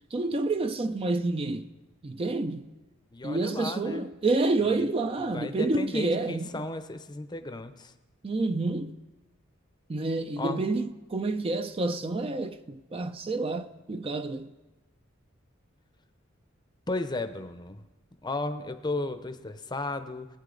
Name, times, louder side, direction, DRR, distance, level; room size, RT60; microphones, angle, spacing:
voice 1, 0.1-1.7 2.0-2.7 3.2-6.7 8.2-9.0 9.9-14.5, right 2 dB, 30° right, 0.4 m, -29 dB
voice 2, 3.1-4.1 4.8-4.9 5.2-7.9 10.4-10.6 16.9-17.8 18.2-20.3, left 2 dB, 20° left, 0.7 m, -34 dB
20.0 x 9.0 x 3.9 m
head